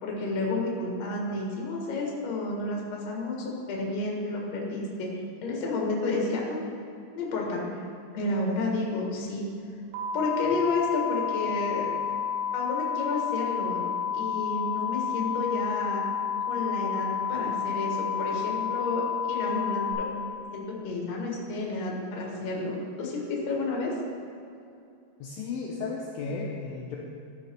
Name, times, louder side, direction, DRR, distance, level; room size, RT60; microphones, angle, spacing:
voice 1, 0.0-6.7 7.2-7.9 8.1-9.5 10.1-11.9 12.5-13.8 14.1-16.1 16.5-20.1 20.5-23.9, left 2 dB, 55° left, -2 dB, 2.0 m, -31 dB
sound 1, 9.9-19.9, left 7 dB, 75° right, 3.6 m, -30 dB
voice 2, 25.2-27.0, left 4 dB, 80° left, -2 dB, 2.2 m, -34 dB
12.5 x 5.9 x 3.5 m, 2.5 s
omnidirectional pair, 4.7 m